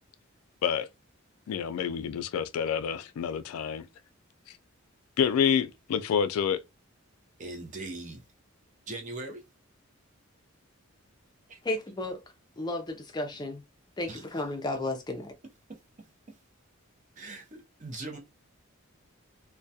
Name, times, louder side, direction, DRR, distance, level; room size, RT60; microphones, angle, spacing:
voice 1, 1.5-3.9 5.2-6.6, left 7 dB, 85° left, 0.3 m, -28 dB
voice 2, 7.4-8.2 8.9-9.4 11.5-11.6 14.1-14.3 15.7-15.8 16.3-16.4 17.2-18.2, right 2 dB, 35° right, 0.6 m, -40 dB
voice 3, 11.6-12.2 12.6-13.6 14.0-15.3, left 2 dB, 20° left, 0.4 m, -33 dB
2.2 x 2.1 x 2.6 m
head